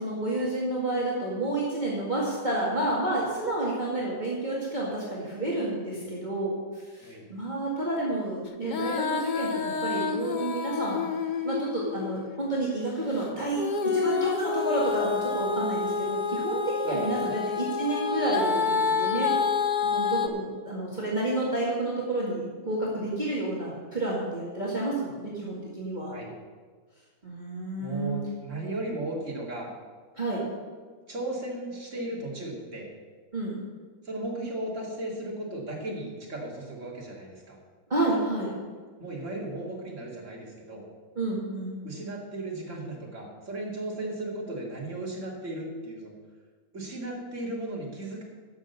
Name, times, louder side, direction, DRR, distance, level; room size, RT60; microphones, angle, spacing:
voice 1, 0.0-6.5 6.9-9.5 9.8-11.0 11.4-13.6 13.9-19.3 19.8-26.1 27.2-28.2 30.2-30.4 33.3-33.6 37.9-38.5 41.2-41.8, right 2 dB, 30° right, -6 dB, 2.2 m, -30 dB
Female singing, 8.6-12.4 13.6-20.3, left 5 dB, 40° left, 0.7 m, -28 dB
voice 2, 16.8-17.4 26.1-26.3 27.8-29.7 31.1-32.9 34.0-37.6 39.0-40.9 41.8-46.1 46.7-48.2, right 2 dB, 50° right, -2 dB, 3.0 m, -35 dB
11.5 x 6.5 x 8.0 m, 1.5 s
omnidirectional pair, 1.7 m